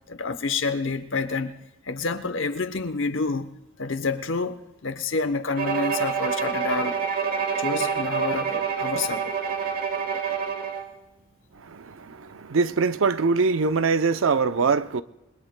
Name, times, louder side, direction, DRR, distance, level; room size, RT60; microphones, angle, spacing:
voice 1, 0.1-1.6 1.8-3.5 3.8-7.0 7.6-9.3, left 4 dB, 65° left, 0.9 m, -28 dB
Bowed string instrument, 5.6-10.9, right 6 dB, 45° right, 1.2 m, -27 dB
voice 2, 11.6-15.0, right 4 dB, 75° right, 0.6 m, -23 dB
28.0 x 21.5 x 2.2 m
head